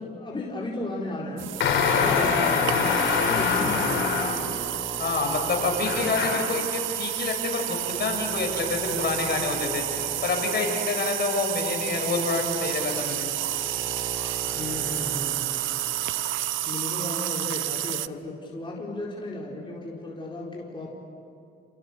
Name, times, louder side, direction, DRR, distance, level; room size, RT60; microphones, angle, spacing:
voice 1, 0.0-4.0 14.4-15.5 16.7-21.0, left 2 dB, 25° left, -4 dB, 4.6 m, -34 dB
sound 1, 1.4-18.1, right 14 dB, 80° right, 0.7 m, -30 dB
sound 2, 1.5-16.7, right 2 dB, 15° right, 4.1 m, -41 dB
sound 3, 1.6-4.6 5.8-6.6, left 6 dB, 80° left, 4.1 m, -24 dB
voice 2, 5.0-13.3, left 4 dB, 55° left, 2 dB, 6.8 m, -28 dB
29.0 x 29.0 x 7.0 m, 2.5 s
cardioid pair, 90°, 20 cm